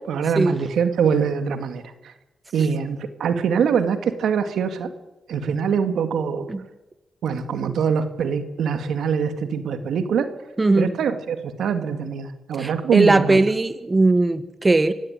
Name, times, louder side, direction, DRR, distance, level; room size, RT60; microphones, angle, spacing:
voice 1, 0.1-2.1 2.5-4.9 5.3-6.5 7.2-10.3 10.8-13.4, right 6 dB, 80° right, 8 dB, 2.3 m, -23 dB
voice 2, 12.6-14.9, right 2 dB, 30° right, 12 dB, 1.8 m, -19 dB
25.5 x 16.5 x 9.3 m, 0.99 s
supercardioid pair, 55°, 0 cm